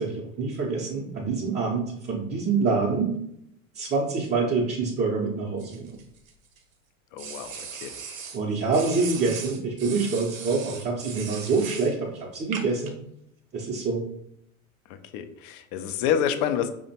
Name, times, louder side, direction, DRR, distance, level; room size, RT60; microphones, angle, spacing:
voice 1, 0.0-3.1 3.7-6.0 8.3-13.0 13.5-14.0, right 4 dB, 25° right, -4 dB, 0.6 m, -26 dB
sound 1, 5.6-6.6 7.2-8.4 8.7-11.9 12.5-12.9, right 6 dB, 80° right, 0.7 m, -38 dB
voice 2, 7.1-8.0 14.9-16.7, left 9 dB, 45° left, 9 dB, 0.5 m, -28 dB
4.9 x 2.1 x 2.7 m, 0.74 s
hypercardioid pair, 85°, 41 cm